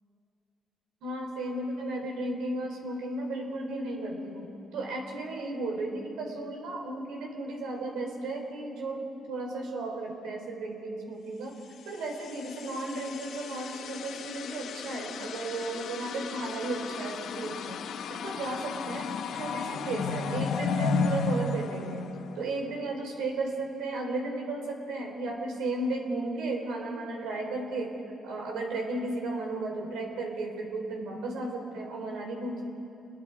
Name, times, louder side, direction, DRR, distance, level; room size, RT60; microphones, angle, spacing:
voice 1, 1.0-11.5 11.9-17.8 18.1-19.1 19.3-27.9 28.2-32.6, right 2 dB, 85° right, 1 dB, 4.1 m, -34 dB
sound 1, 12.0-22.7, left 4 dB, 75° left, 1.0 m, -34 dB
28.0 x 21.0 x 4.8 m, 2.7 s
cardioid pair, 80°, 0 cm